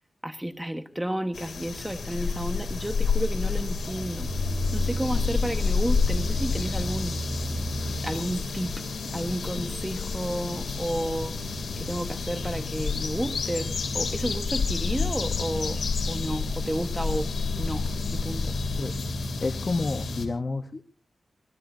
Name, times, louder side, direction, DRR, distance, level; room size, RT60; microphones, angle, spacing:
voice 1, 0.2-4.3 4.7-7.1 8.0-8.8 9.1-11.4 11.8-15.8 16.1-17.3 17.6-17.9 18.1-18.5, right 1 dB, 10° right, 7 dB, 1.3 m, -31 dB
sound 1, 1.3-20.3, left 4 dB, 85° left, 2.9 m, -29 dB
sound 2, 3.4-8.5, right 1 dB, 40° right, 1.9 m, -34 dB
voice 2, 19.4-20.8, left 3 dB, 40° left, 8 dB, 1.1 m, -29 dB
26.0 x 18.5 x 2.7 m, 0.39 s
wide cardioid pair, 90°, 0 cm